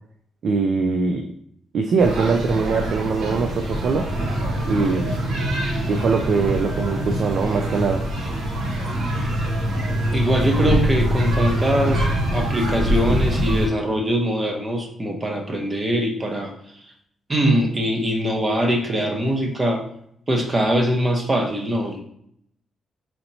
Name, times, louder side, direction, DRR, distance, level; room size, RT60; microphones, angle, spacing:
voice 1, 0.4-1.3 1.7-4.1 4.6-5.2 5.9-8.0, right 4 dB, 55° right, 5 dB, 0.3 m, -22 dB
sound 1, 2.0-13.7, right 1 dB, 85° right, 1.0 m, -24 dB
voice 2, 10.1-16.5 17.3-19.8 20.3-22.0, equal, 20° right, 2 dB, 0.7 m, -22 dB
4.3 x 2.7 x 2.7 m, 0.70 s
cardioid pair, 140°, 0 cm